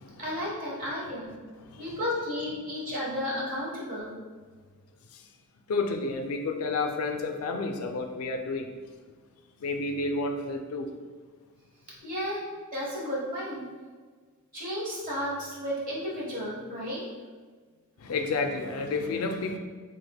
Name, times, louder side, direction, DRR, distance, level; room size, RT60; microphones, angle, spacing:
voice 1, 0.2-1.3 1.8-4.1 12.0-12.4 12.7-13.6 14.5-17.0, left 1 dB, 40° right, -6 dB, 1.0 m, -33 dB
voice 2, 5.7-8.7 9.6-10.9 18.0-19.6, left 3 dB, 80° left, 4 dB, 0.4 m, -30 dB
3.4 x 3.3 x 2.3 m, 1.5 s
head